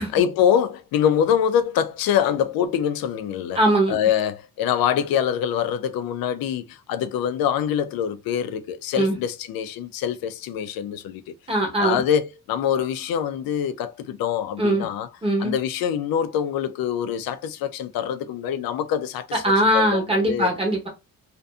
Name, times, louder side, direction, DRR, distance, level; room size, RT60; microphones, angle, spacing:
voice 1, 0.0-3.6 3.9-11.3 11.8-15.1 15.4-19.4 19.7-20.5, left 9 dB, 80° left, 0.5 m, -24 dB
voice 2, 3.6-4.0 9.0-9.2 11.5-12.0 14.6-14.9 15.2-15.5 19.4-20.9, right 1 dB, 15° right, 0.9 m, -21 dB
2.5 x 2.5 x 2.3 m
cardioid pair, 160°, 35 cm